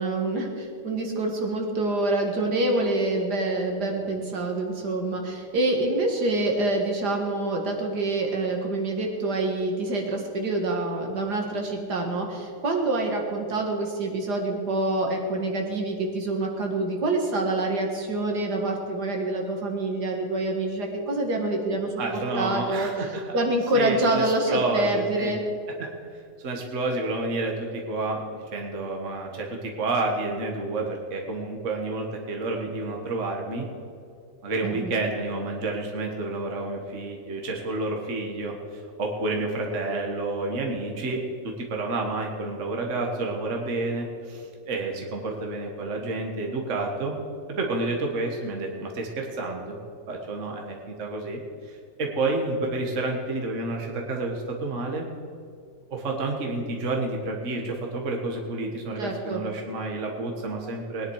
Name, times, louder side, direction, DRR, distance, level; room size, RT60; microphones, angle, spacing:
voice 1, 0.0-22.9 23.3-25.4 34.6-34.9 59.0-59.4, right 2 dB, 65° right, 2 dB, 2.3 m, -26 dB
voice 2, 22.0-23.2 23.7-25.3 25.8-25.9 26.4-33.7 34.4-38.5 39.0-47.2 47.6-49.8 50.1-51.4 51.7-55.1 55.9-61.1, right 2 dB, 45° right, 1 dB, 1.8 m, -29 dB
20.5 x 10.5 x 4.8 m, 2.4 s
omnidirectional pair, 1.9 m